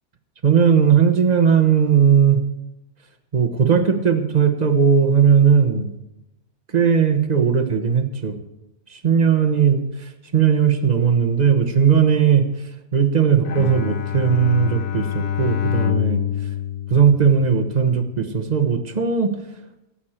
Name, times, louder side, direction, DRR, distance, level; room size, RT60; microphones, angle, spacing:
voice 1, 0.4-2.4 3.3-5.9 6.7-8.4 8.9-9.8 10.3-12.5 12.9-16.2 16.9-19.4, right 7 dB, 35° right, 8 dB, 0.9 m, -17 dB
Bowed string instrument, 13.4-17.8, left 10 dB, 90° left, 1.4 m, -26 dB
17.5 x 8.8 x 4.4 m, 0.92 s
omnidirectional pair, 1.6 m